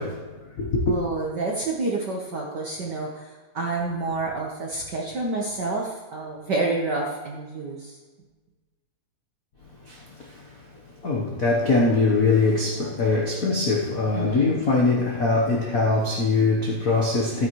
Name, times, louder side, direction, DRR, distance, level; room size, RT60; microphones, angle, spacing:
voice 1, 0.0-0.9 9.9-10.6 11.0-17.5, left 3 dB, 65° left, 0.8 m, -22 dB
voice 2, 0.9-8.0 14.1-14.6, right 3 dB, 55° right, 1.2 m, -29 dB
12.5 x 9.8 x 3.1 m
omnidirectional pair, 3.3 m